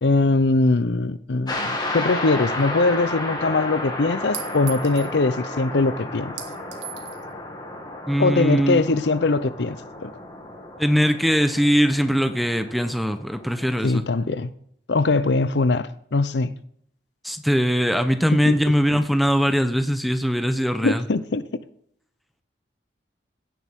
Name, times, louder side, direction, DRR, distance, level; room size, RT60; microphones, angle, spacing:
voice 1, 0.0-6.3 8.2-9.8 10.0-10.1 13.8-14.5 14.9-16.5 18.5-18.6 20.8-21.4, left 3 dB, 75° left, 0.7 m, -21 dB
sound 1, 1.5-14.0, left 2 dB, 25° left, 2.2 m, -33 dB
Chink clink, 2.6-2.7 4.3-5.2 6.4-7.3, right 11 dB, 90° right, 1.8 m, -37 dB
voice 2, 8.1-8.8 10.8-14.0 17.2-21.0, equal, ahead, 0.8 m, -21 dB
16.0 x 10.5 x 3.7 m
head